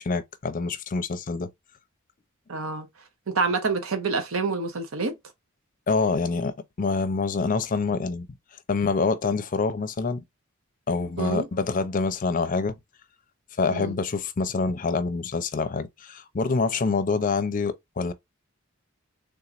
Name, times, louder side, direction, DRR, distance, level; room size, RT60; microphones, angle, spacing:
voice 1, 0.0-1.5 5.9-8.3 8.7-10.2 10.9-12.8 13.6-18.1, left 4 dB, 40° left, 0.5 m, -26 dB
voice 2, 2.5-2.9 3.3-5.1 11.2-11.5 13.7-13.9, right 4 dB, 85° right, 0.8 m, -27 dB
3.6 x 2.9 x 2.4 m
head